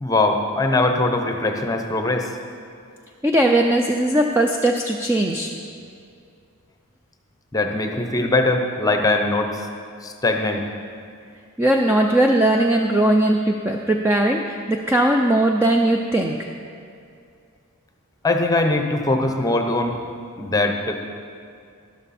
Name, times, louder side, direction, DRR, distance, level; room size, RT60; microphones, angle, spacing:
voice 1, 0.0-2.3 7.5-9.6 10.0-10.6 18.2-20.0 20.4-21.1, left 2 dB, 15° left, 4 dB, 0.8 m, -21 dB
voice 2, 3.2-5.5 11.6-16.4, right 1 dB, 10° right, 1 dB, 0.5 m, -19 dB
12.5 x 12.0 x 4.3 m, 2.4 s
head